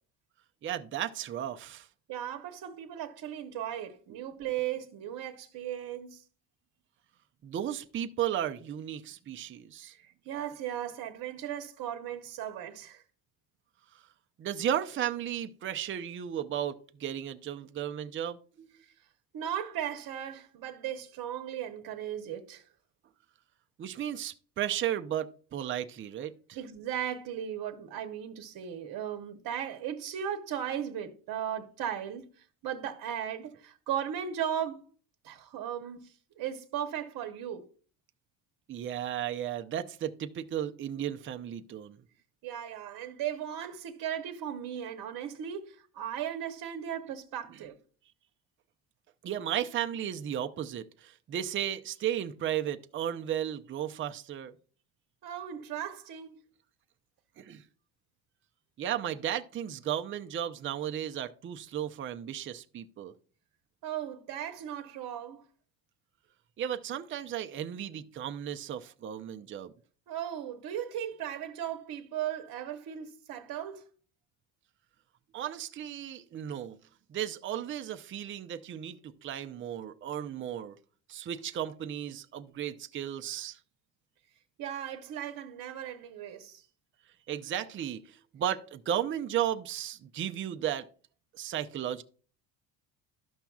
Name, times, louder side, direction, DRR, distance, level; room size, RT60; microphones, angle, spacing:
voice 1, 0.6-1.9 7.4-9.9 13.9-14.0 14.4-18.7 23.8-26.6 38.7-42.0 49.2-54.5 57.4-57.6 58.8-63.1 66.6-69.7 75.3-76.8 77.1-80.8 81.1-83.6 87.3-90.9 91.4-92.0, right 10 dB, 30° right, 0.5 m, -34 dB
voice 2, 2.1-6.2 9.8-13.0 19.3-22.7 26.6-34.9 35.2-37.7 42.4-47.8 55.2-56.4 63.8-65.4 70.1-73.8 84.6-86.6, right 10 dB, 55° right, 0.9 m, -37 dB
12.5 x 5.8 x 2.3 m
cardioid pair, 105°, 42 cm